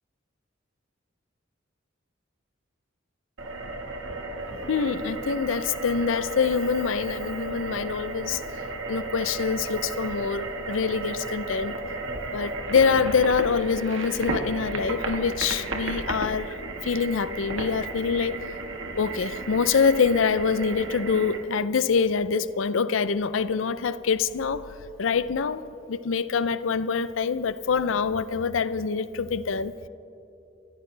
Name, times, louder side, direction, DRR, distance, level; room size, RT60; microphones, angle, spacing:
sound 1, 3.4-21.4, right 2 dB, 80° right, 1.6 m, -34 dB
voice 1, 4.7-8.4 8.9-11.8 12.3-16.5 16.8-18.5 19.0-24.7 25.0-25.6 25.9-29.7, left 5 dB, 85° left, 0.5 m, -25 dB
28.5 x 14.5 x 3.3 m
head